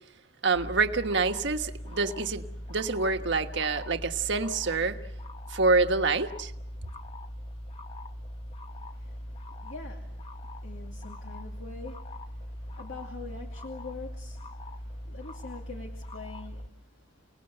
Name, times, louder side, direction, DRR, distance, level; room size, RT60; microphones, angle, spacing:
voice 1, 0.4-5.0 5.5-6.5, right 4 dB, 65° right, 7 dB, 1.4 m, -27 dB
sound 1, 0.5-16.7, left 1 dB, 30° left, 1.1 m, -41 dB
voice 2, 8.7-17.2, left 3 dB, 80° left, 1 dB, 2.4 m, -45 dB
29.0 x 18.5 x 8.0 m, 0.84 s
head